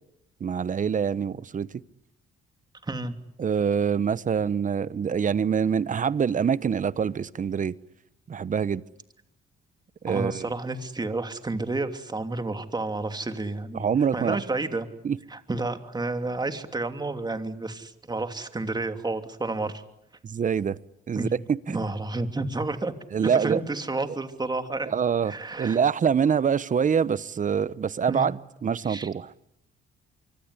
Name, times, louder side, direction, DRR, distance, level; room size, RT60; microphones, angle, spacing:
voice 1, 0.4-1.7 3.4-7.7 8.3-8.8 10.0-10.5 13.7-14.6 15.0-15.2 20.2-20.8 21.1-21.8 23.1-23.6 24.9-29.3, right 7 dB, 40° right, 1.0 m, -25 dB
voice 2, 2.8-3.2 10.1-13.8 14.1-14.9 15.3-19.8 21.1-21.3 21.7-22.9 23.2-24.9 25.3-25.8 28.1-28.3 28.8-29.1, right 2 dB, 20° right, 2.9 m, -30 dB
25.0 x 24.5 x 9.9 m
cardioid pair, 90°, 20 cm